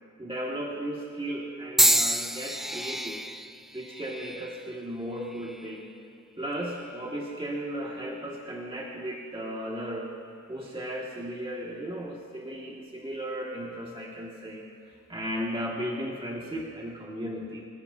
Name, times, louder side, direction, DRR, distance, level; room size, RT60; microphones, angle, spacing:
voice 1, 0.2-3.2 3.7-5.9 6.4-10.1 10.5-14.6 15.1-17.7, equal, 15° right, -3 dB, 2.0 m, -35 dB
sound 1, 1.8-5.9 6.6-7.0 8.0-8.2, equal, ahead, 0.4 m, -29 dB
26.5 x 16.0 x 2.7 m, 2.6 s
wide cardioid pair, 90°, 30 cm